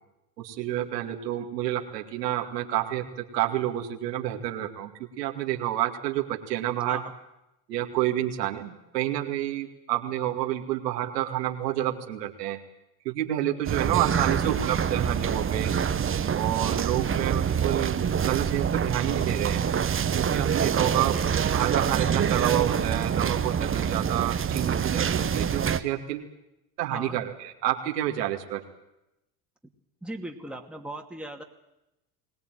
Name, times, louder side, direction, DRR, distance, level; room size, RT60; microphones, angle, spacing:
voice 1, 0.4-3.0 3.3-4.9 5.2-7.0 7.7-12.6 13.0-15.8 16.3-19.6 20.1-21.2 21.5-26.2 26.8-28.6, right 13 dB, 85° right, 3 dB, 2.5 m, -29 dB
sound 1, 13.6-25.8, right 7 dB, 25° right, 1.3 m, -26 dB
voice 2, 30.0-31.4, right 1 dB, ahead, 2 dB, 2.4 m, -38 dB
22.0 x 18.0 x 9.3 m, 0.89 s
hypercardioid pair, 85°, 47 cm